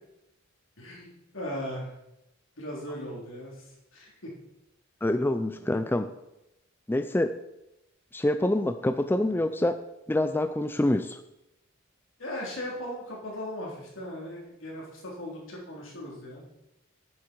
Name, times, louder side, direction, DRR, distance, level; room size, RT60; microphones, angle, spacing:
voice 1, 0.8-2.0 2.6-4.3 12.2-16.4, left 1 dB, 75° left, -3 dB, 3.7 m, -38 dB
voice 2, 5.0-6.1 6.9-7.3 8.1-9.8 10.1-11.2, left 1 dB, 10° left, 9 dB, 0.4 m, -26 dB
10.5 x 8.7 x 4.6 m, 0.89 s
head